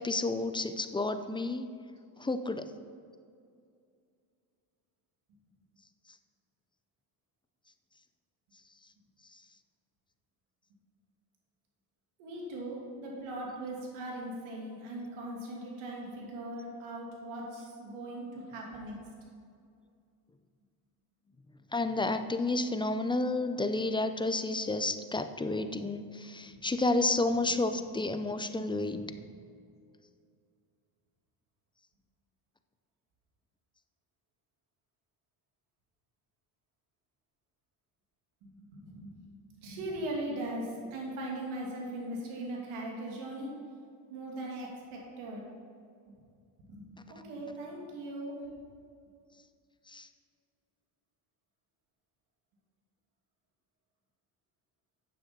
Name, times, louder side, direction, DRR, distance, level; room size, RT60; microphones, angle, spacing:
voice 1, 0.0-1.7 2.2-2.7 21.7-29.0 49.9-50.1, left 2 dB, 10° left, 9 dB, 0.5 m, -31 dB
voice 2, 12.2-19.0 26.5-26.6 27.2-28.0 28.9-29.0 38.4-39.1 39.6-43.5 44.1-45.4 46.1-46.2 46.7-48.4, right 1 dB, 80° right, -2 dB, 2.6 m, -40 dB
9.1 x 7.2 x 5.6 m, 2.3 s
supercardioid pair, 80°, 48 cm